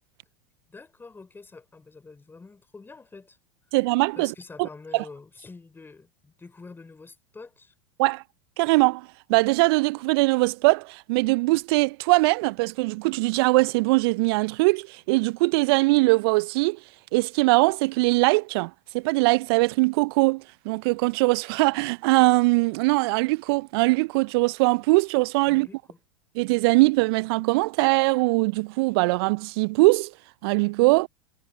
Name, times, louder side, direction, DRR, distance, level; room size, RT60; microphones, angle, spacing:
voice 1, 0.7-3.4 3.7-3.8 4.1-7.7 25.5-26.0, left 4 dB, 15° left, 4.0 m, -46 dB
voice 2, 3.7-4.3 4.6-4.7 4.9-5.0 8.0-8.2 8.6-16.8 17.1-25.7 26.4-30.1 30.4-31.1, right 25 dB, 55° right, 0.5 m, -21 dB
figure-of-eight pair, 85°, 16 cm